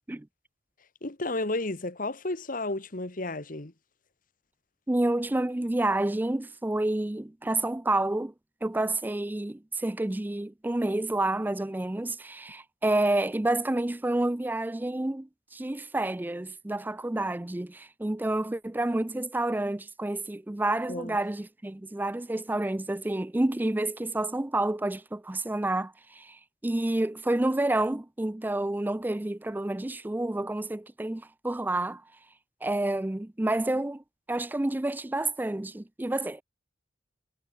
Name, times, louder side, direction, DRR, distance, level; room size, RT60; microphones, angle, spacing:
voice 1, 1.0-3.7 20.9-21.2, left 2 dB, 45° left, 1.8 m, -32 dB
voice 2, 4.9-8.3 8.6-26.4 26.6-32.0 32.6-34.0 34.3-36.4, right 2 dB, 10° right, 0.4 m, -29 dB
head